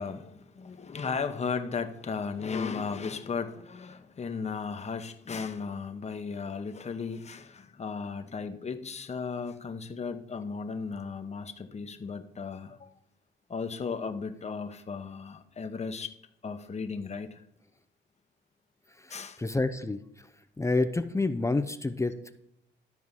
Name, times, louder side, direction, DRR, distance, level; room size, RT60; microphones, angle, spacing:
voice 1, 0.0-12.9 13.5-16.1 16.4-17.4 19.1-19.4, left 5 dB, 35° left, 1.0 m, -35 dB
voice 2, 19.0-20.3 20.6-22.3, left 3 dB, 15° left, 0.6 m, -29 dB
12.5 x 4.7 x 5.5 m
cardioid pair, 90°, 20 cm